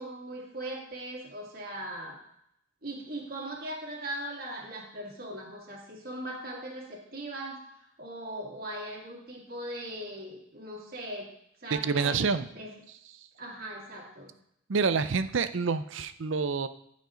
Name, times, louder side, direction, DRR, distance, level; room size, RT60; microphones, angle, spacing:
voice 1, 0.0-2.2 2.8-7.6 8.0-11.3 11.6-12.7 13.3-14.3, right 1 dB, 45° right, -3 dB, 2.1 m, -39 dB
voice 2, 11.7-12.5 14.7-16.7, right 5 dB, 60° right, 12 dB, 0.5 m, -27 dB
14.5 x 5.3 x 3.8 m, 0.74 s
head